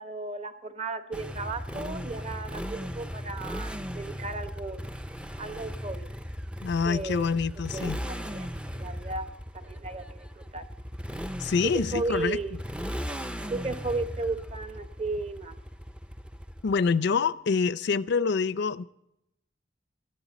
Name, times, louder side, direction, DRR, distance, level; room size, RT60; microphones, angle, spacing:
voice 1, 0.0-4.9 5.4-6.1 6.8-7.3 7.7-10.6 11.6-12.6 13.5-15.5, right 3 dB, 35° right, 0.9 m, -35 dB
Motorcycle, 1.1-16.9, equal, 5° right, 0.4 m, -37 dB
voice 2, 6.6-8.0 11.4-12.4 16.6-18.8, left 5 dB, 60° left, 0.5 m, -26 dB
20.0 x 13.0 x 4.1 m
head